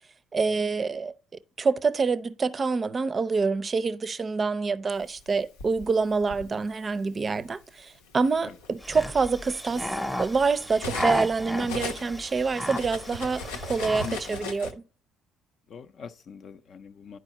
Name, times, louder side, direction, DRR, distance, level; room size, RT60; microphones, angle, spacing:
voice 1, 0.3-1.1 1.6-9.9 10.2-14.8, right 4 dB, 35° right, 0.5 m, -26 dB
Cutlery silverware, 5.2-6.5 7.4-7.6 8.0-11.3 11.6-14.7, left 3 dB, 85° left, 0.8 m, -38 dB
sound 1, 8.8-14.4, left 1 dB, 5° left, 0.7 m, -34 dB
voice 2, 14.0-14.5 15.7-17.2, left 6 dB, 55° left, 0.5 m, -43 dB
10.5 x 4.6 x 2.9 m
hypercardioid pair, 60°, 0 cm